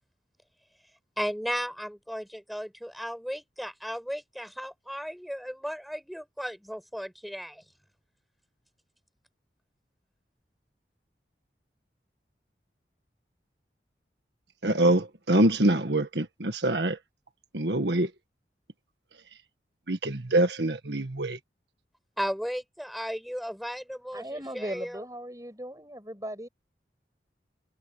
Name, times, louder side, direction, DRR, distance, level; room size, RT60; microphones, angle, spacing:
voice 1, 1.2-7.6 22.2-25.0, equal, ahead, 8.0 m, -35 dB
voice 2, 14.6-17.0 17.5-18.1 19.9-21.4, right 1 dB, 80° right, 1.6 m, -25 dB
voice 3, 24.1-26.5, right 1 dB, 20° right, 7.9 m, -38 dB
head